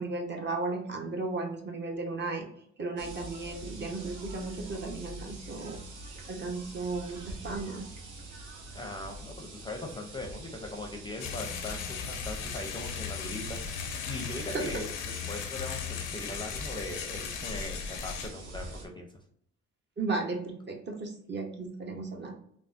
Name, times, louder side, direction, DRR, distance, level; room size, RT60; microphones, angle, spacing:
voice 1, 0.0-2.5 2.8-5.8 6.3-7.9 14.5-14.8 20.0-22.3, right 3 dB, 35° right, 2 dB, 0.7 m, -35 dB
sound 1, 3.0-18.9, right 1 dB, 85° right, 0.7 m, -45 dB
voice 2, 8.7-13.6 14.0-14.9 15.3-19.1, left 2 dB, 15° left, 2 dB, 0.5 m, -40 dB
sound 2, 11.2-18.3, left 7 dB, 90° left, 0.5 m, -37 dB
3.5 x 2.0 x 2.5 m, 0.68 s
cardioid pair, 90°, 30 cm